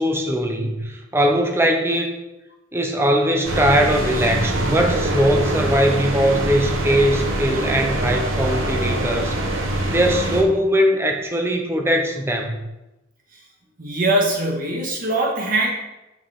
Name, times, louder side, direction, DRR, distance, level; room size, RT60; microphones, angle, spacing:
voice 1, 0.0-2.1 2.7-9.4 9.9-12.6, equal, 10° right, 3 dB, 0.7 m, -20 dB
sound 1, 3.4-10.4, right 1 dB, 85° right, 1.0 m, -24 dB
voice 2, 13.8-15.7, right 1 dB, 45° right, -1 dB, 1.6 m, -21 dB
6.6 x 6.4 x 3.6 m, 0.98 s
head